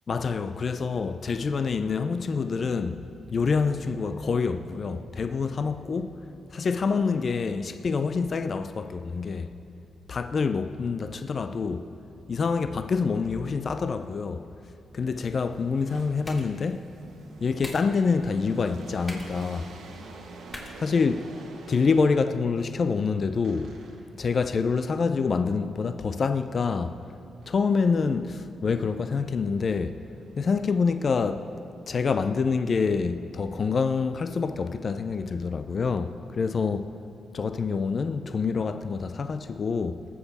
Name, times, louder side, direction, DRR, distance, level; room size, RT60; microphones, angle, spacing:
voice 1, 0.1-3.0 3.3-6.2 6.5-9.5 10.1-11.9 12.3-14.5 14.9-16.9 17.4-19.7 20.8-21.4 21.7-23.8 24.2-27.0 27.5-30.0 30.4-31.5 31.9-37.0 37.3-40.0, left 5 dB, 50° left, 0.4 m, -26 dB
sound 1, 14.9-22.6 23.4-24.3 27.4-28.2 28.7-31.1, right 3 dB, 80° right, 1.4 m, -48 dB
sound 2, 15.7-21.7, left 1 dB, 25° left, 2.7 m, -47 dB
19.0 x 7.1 x 4.1 m
supercardioid pair, 60°, 0 cm